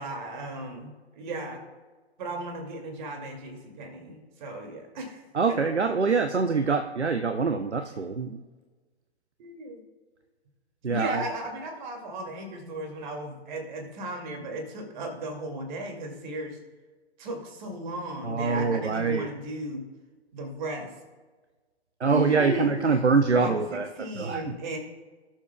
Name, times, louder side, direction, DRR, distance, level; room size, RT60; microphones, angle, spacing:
voice 1, 0.0-1.7 2.2-5.2 5.5-5.6 5.9-6.0 9.4-9.8 10.9-16.6 17.2-19.9 20.3-20.9 22.1-22.7 23.3-24.8, right 1 dB, 45° right, 3 dB, 2.3 m, -35 dB
voice 2, 5.3-8.4 10.8-11.3 18.2-19.3 22.0-23.9 24.1-24.5, right 4 dB, 85° right, 7 dB, 0.7 m, -24 dB
18.5 x 7.3 x 2.2 m, 1.3 s
figure-of-eight pair, 115°, 33 cm